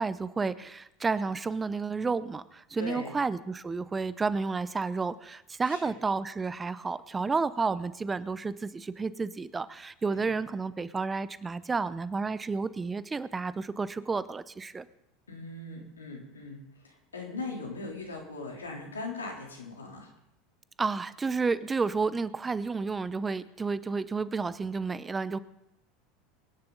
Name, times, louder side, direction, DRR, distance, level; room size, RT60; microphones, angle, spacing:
voice 1, 0.0-14.8 20.8-25.4, right 4 dB, 20° right, 16 dB, 0.7 m, -31 dB
voice 2, 2.8-3.2 5.7-5.9 10.1-10.3 15.3-20.1, left 3 dB, 85° left, 0 dB, 3.4 m, -40 dB
24.0 x 10.5 x 4.0 m, 0.86 s
hypercardioid pair, 80°, 0 cm